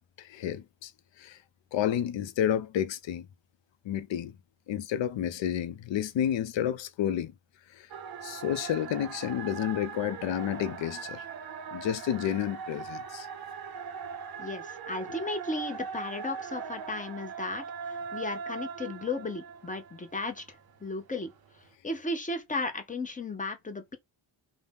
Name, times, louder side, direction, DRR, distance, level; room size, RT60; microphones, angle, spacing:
voice 1, 0.2-0.9 1.2-1.4 1.7-3.3 3.8-4.3 4.7-7.3 7.7-7.9 8.2-11.2 11.7-13.3, left 10 dB, 70° left, 0.5 m, -30 dB
sound 1, 7.9-20.7, right 6 dB, 50° right, 0.5 m, -40 dB
voice 2, 14.4-17.6 18.1-20.4 20.8-21.3 21.8-24.0, left 2 dB, 15° left, 0.6 m, -34 dB
2.6 x 2.1 x 3.3 m
cardioid pair, 70°, 47 cm